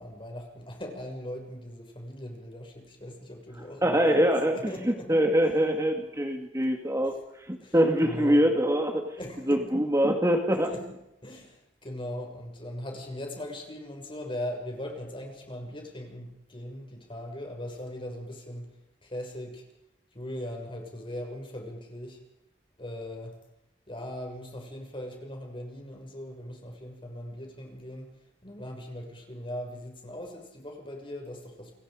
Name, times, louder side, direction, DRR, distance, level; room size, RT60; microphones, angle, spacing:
voice 1, 0.0-5.2 5.4-5.5 7.6-7.8 8.0-8.4 9.1-9.6 10.6-10.9 11.2-19.6 20.1-22.2 22.8-23.4 23.9-28.2 28.4-31.7, left 1 dB, 30° left, 2 dB, 6.5 m, -39 dB
voice 2, 3.8-9.2 9.5-10.7, equal, 20° right, 4 dB, 2.4 m, -24 dB
29.0 x 23.0 x 5.2 m, 0.83 s
head